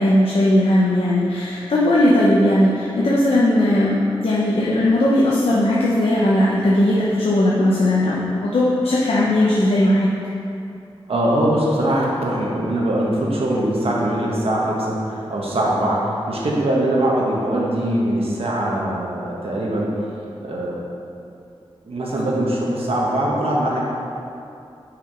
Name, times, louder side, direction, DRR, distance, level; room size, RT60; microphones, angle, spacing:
voice 1, 0.0-10.1, left 1 dB, 85° left, -6 dB, 0.8 m, -18 dB
voice 2, 11.1-19.9 20.4-20.9 21.9-23.8, right 1 dB, 75° right, -4 dB, 1.3 m, -22 dB
6.1 x 5.0 x 5.1 m, 2.6 s
wide cardioid pair, 100°, 10 cm